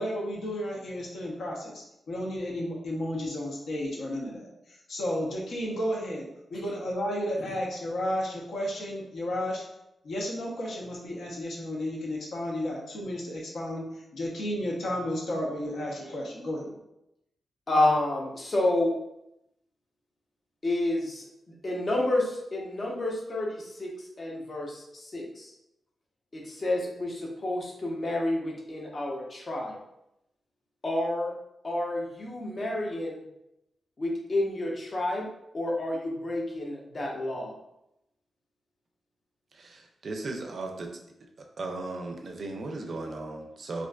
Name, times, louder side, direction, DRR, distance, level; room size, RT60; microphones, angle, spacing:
voice 1, 0.0-9.6 10.0-13.9 14.1-16.7, equal, 80° left, -2 dB, 0.7 m, -33 dB
voice 2, 17.7-19.0 20.6-21.2 21.6-24.8 25.1-25.5 26.3-29.8 30.8-31.3 31.6-33.2 34.0-35.3 35.5-37.5, left 1 dB, 40° left, -1 dB, 0.6 m, -29 dB
voice 3, 39.5-40.9 41.6-43.9, right 2 dB, 60° right, 3 dB, 0.4 m, -36 dB
2.5 x 2.3 x 2.2 m, 0.84 s
cardioid pair, 85°, 0 cm